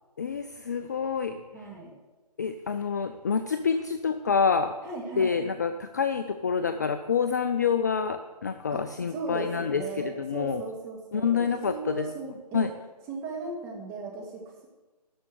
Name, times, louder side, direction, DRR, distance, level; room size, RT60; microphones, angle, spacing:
voice 1, 0.2-1.4 2.4-4.7 5.2-10.6 11.1-12.1 12.5-12.7, left 6 dB, 25° left, 9 dB, 0.4 m, -27 dB
voice 2, 1.5-1.9 4.8-5.3 8.7-8.8 9.1-12.7 13.1-14.7, right 3 dB, 15° right, -1 dB, 2.1 m, -37 dB
12.5 x 5.6 x 8.0 m, 1.2 s
figure-of-eight pair, 150°, 21 cm